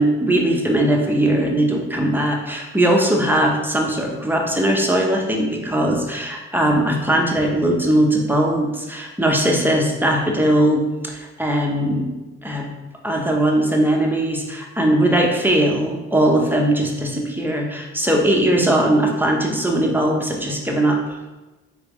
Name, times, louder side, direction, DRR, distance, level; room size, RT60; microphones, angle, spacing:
voice 1, 0.0-12.1 12.4-12.7 13.0-21.2, right 1 dB, 5° right, 0 dB, 0.9 m, -19 dB
4.7 x 3.3 x 3.0 m, 1.1 s
supercardioid pair, 70°, 30 cm